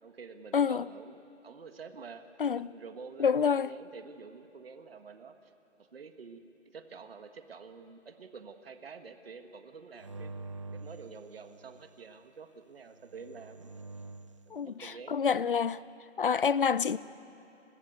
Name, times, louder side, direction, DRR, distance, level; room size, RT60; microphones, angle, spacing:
voice 1, 0.0-2.2 2.5-5.5 5.8-10.3 10.7-13.7 14.5-15.2 15.5-15.6, right 5 dB, 50° right, 1.7 m, -48 dB
voice 2, 0.5-0.8 2.4-2.7 3.2-3.7 14.5-15.8 16.2-17.0, left 6 dB, 45° left, 0.6 m, -27 dB
sound 1, 10.0-11.9 12.9-14.4, right 2 dB, 25° right, 0.7 m, -46 dB
30.0 x 21.5 x 8.1 m
hypercardioid pair, 165°, 37 cm